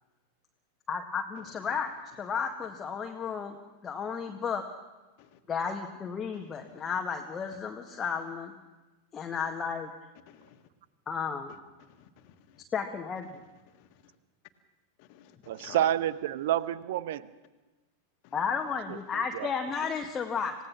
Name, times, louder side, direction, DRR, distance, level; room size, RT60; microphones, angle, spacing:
voice 1, 0.9-3.6 3.8-4.7 5.5-8.5 9.1-9.9 11.1-11.5 12.7-13.4 18.3-20.5, left 6 dB, 20° left, 3 dB, 1.7 m, -33 dB
voice 2, 10.3-10.6 11.9-12.6 13.8-13.9 15.0-15.9 18.2-18.3, left 13 dB, 45° left, 9 dB, 1.8 m, -52 dB
voice 3, 15.5-17.3 18.9-19.5, right 12 dB, 55° right, 17 dB, 0.9 m, -29 dB
27.5 x 17.5 x 6.1 m, 1.2 s
figure-of-eight pair, 90°, 0 cm